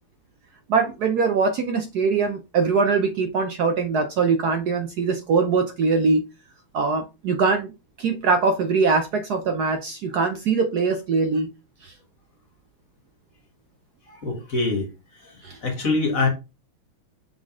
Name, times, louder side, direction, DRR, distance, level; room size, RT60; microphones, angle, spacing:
voice 1, 0.7-6.2 6.7-7.7 8.0-11.5 11.8-11.9 15.4-15.6, right 4 dB, 65° right, 1.1 m, -22 dB
voice 2, 14.1-14.9 15.2-16.3, left 3 dB, 45° left, 2.1 m, -25 dB
6.5 x 4.0 x 3.7 m
omnidirectional pair, 2.2 m